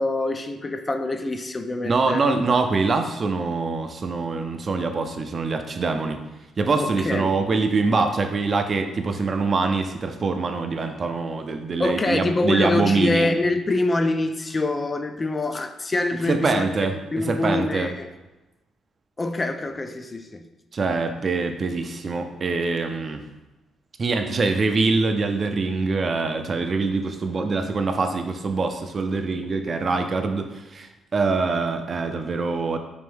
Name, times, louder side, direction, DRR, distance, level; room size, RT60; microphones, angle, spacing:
voice 1, 0.0-2.3 6.8-7.4 11.8-16.7 17.1-18.1 19.2-20.4, left 2 dB, 25° left, 7 dB, 0.3 m, -25 dB
voice 2, 1.8-6.2 6.6-13.3 16.3-17.0 17.3-17.9 20.7-23.2 24.0-30.9 31.1-32.8, right 4 dB, 40° right, 6 dB, 0.4 m, -24 dB
4.3 x 2.7 x 3.4 m, 1.0 s
cardioid pair, 90°, 0 cm